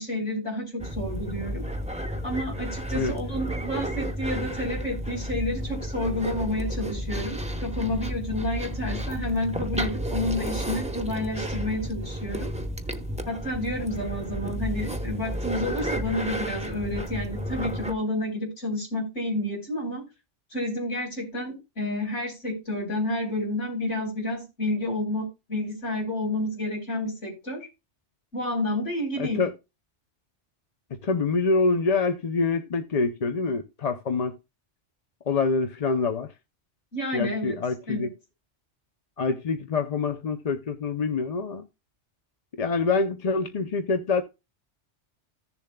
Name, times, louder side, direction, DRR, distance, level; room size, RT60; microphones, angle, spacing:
voice 1, 0.0-1.6 2.2-12.5 13.3-20.0 20.5-27.7 28.3-29.4 36.9-37.6 37.9-38.1, left 1 dB, 80° left, 4.2 m, -30 dB
sound 1, 0.8-17.9, equal, 5° right, 0.8 m, -32 dB
voice 2, 29.2-29.5 31.0-34.4 35.3-36.3 37.1-38.1 39.2-41.7 42.6-44.2, left 4 dB, 40° left, 0.6 m, -26 dB
15.0 x 7.0 x 2.2 m
omnidirectional pair, 1.2 m